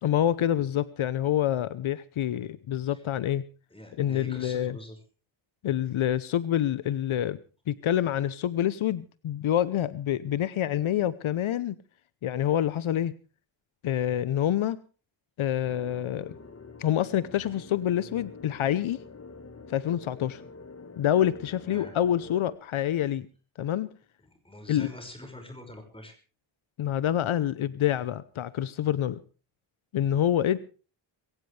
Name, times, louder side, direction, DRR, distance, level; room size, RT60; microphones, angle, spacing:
voice 1, 0.0-3.4 4.0-4.8 5.6-7.4 7.7-11.8 12.2-13.1 13.8-14.8 15.4-16.3 16.8-19.0 19.7-20.4 21.0-23.3 23.6-23.9 24.7-24.9 26.8-29.2 29.9-30.6, left 11 dB, 80° left, 16 dB, 0.9 m, -27 dB
voice 2, 3.7-5.0 21.6-22.0 24.4-26.2, left 1 dB, 10° left, 5 dB, 5.7 m, -44 dB
sound 1, 15.6-22.6, left 4 dB, 30° left, 1.7 m, -47 dB
21.5 x 17.5 x 3.3 m, 0.36 s
wide cardioid pair, 120°, 48 cm